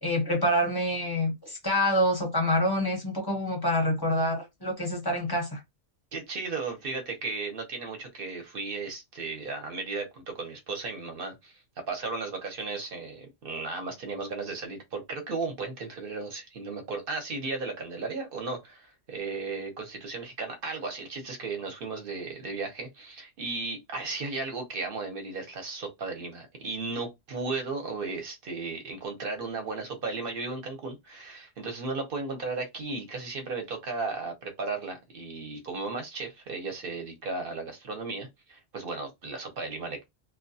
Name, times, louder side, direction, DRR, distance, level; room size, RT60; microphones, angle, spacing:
voice 1, 0.0-5.6, left 1 dB, 25° left, 0.6 m, -26 dB
voice 2, 6.1-11.6 11.9-40.0, right 3 dB, 55° right, 0.8 m, -35 dB
2.3 x 2.2 x 2.6 m
omnidirectional pair, 1.3 m